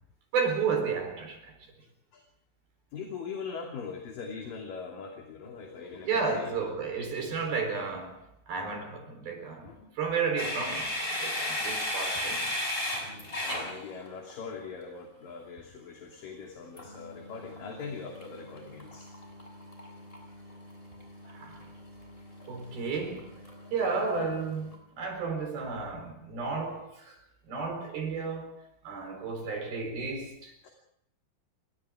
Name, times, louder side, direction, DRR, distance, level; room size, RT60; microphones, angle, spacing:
voice 1, 0.3-1.5 6.0-8.2 8.5-12.5 21.3-21.6 22.5-23.3 23.7-27.2 27.5-30.5, right 5 dB, 60° right, 5.6 m, -32 dB
voice 2, 1.8-2.3 2.9-6.7 9.6-10.0 13.4-19.1 20.3-20.4 22.6-22.7 23.6-23.7 30.6-30.7, left 5 dB, 55° left, 4.3 m, -42 dB
sound 1, 10.4-14.4 16.8-24.8, left 1 dB, 10° left, 6.4 m, -37 dB
30.0 x 24.0 x 3.7 m
omnidirectional pair, 4.8 m